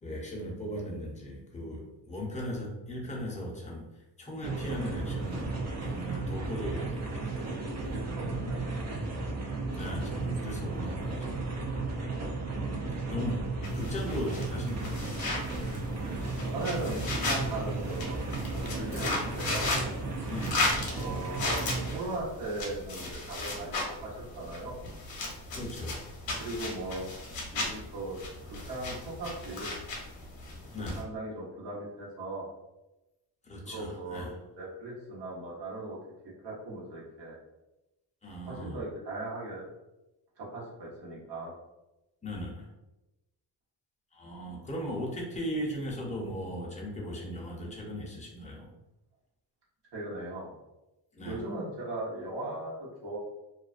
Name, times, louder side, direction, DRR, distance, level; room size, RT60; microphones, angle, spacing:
voice 1, 0.0-3.9 4.2-7.5 7.8-8.0 9.7-11.4 11.7-11.8 13.1-13.5 13.7-15.0 20.3-20.7 25.5-26.1 30.7-31.0 33.4-34.3 38.2-38.8 42.2-42.7 44.1-48.7 51.1-51.4, equal, 15° left, -2 dB, 0.6 m, -37 dB
sound 1, 4.4-22.0, right 3 dB, 40° right, 0.5 m, -34 dB
voice 2, 7.5-9.1 16.5-19.7 21.0-24.8 26.4-27.1 27.5-28.2 28.5-29.8 30.8-32.5 33.6-36.0 36.2-37.4 38.5-39.6 40.4-41.5 49.9-50.5 51.3-53.2, right 2 dB, 80° right, -5 dB, 1.1 m, -38 dB
sound 2, 13.6-31.0, left 2 dB, 60° left, 0.7 m, -36 dB
2.4 x 2.1 x 2.4 m, 0.98 s
cardioid pair, 100°, 42 cm